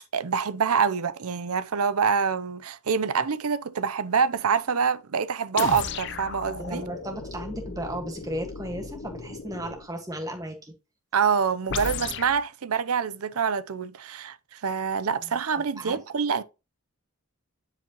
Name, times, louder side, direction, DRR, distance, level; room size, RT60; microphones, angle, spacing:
voice 1, 0.1-6.8 11.1-16.4, right 6 dB, 85° right, 0.6 m, -26 dB
sound 1, 5.6-9.9 11.7-12.4, left 5 dB, 55° left, 0.6 m, -35 dB
voice 2, 6.6-10.7 15.7-16.0, equal, 15° right, 1.5 m, -35 dB
10.0 x 5.0 x 3.0 m
head